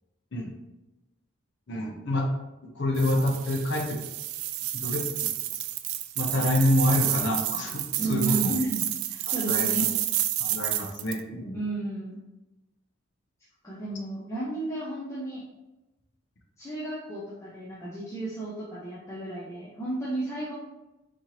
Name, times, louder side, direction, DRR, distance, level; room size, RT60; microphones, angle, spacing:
voice 1, 1.7-2.3 2.8-4.0 4.8-5.3 6.2-8.5 9.5-9.9 10.4-11.6, left 1 dB, 55° left, 1 dB, 0.7 m, -27 dB
sound 1, 3.0-11.2, right 13 dB, 85° right, 0.3 m, -30 dB
voice 2, 8.0-10.0 11.5-12.2 13.6-15.4 16.6-20.5, right 2 dB, 15° left, -7 dB, 0.6 m, -33 dB
4.2 x 2.9 x 3.0 m, 1.0 s
head